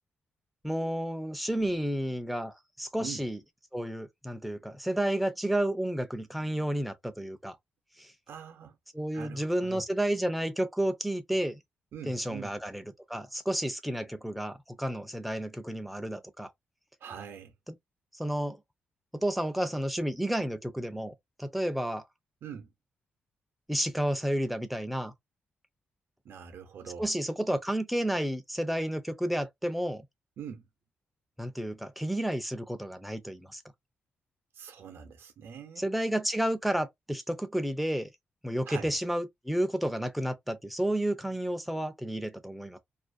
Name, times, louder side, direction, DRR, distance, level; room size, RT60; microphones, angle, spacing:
voice 1, 0.6-3.4 3.7-7.6 8.0-8.1 8.9-11.6 12.1-12.8 13.1-16.5 18.1-18.6 19.1-21.1 21.4-22.0 23.7-25.1 27.0-30.0 31.4-33.6 35.8-38.1 38.4-42.8, right 1 dB, ahead, 0.4 m, -31 dB
voice 2, 8.3-8.8 9.1-9.8 11.9-12.6 17.0-17.5 22.4-22.7 26.2-27.1 30.4-30.7 34.5-35.9 38.7-38.9, right 7 dB, 75° right, 0.6 m, -43 dB
2.5 x 2.0 x 2.4 m
cardioid pair, 105°, 4 cm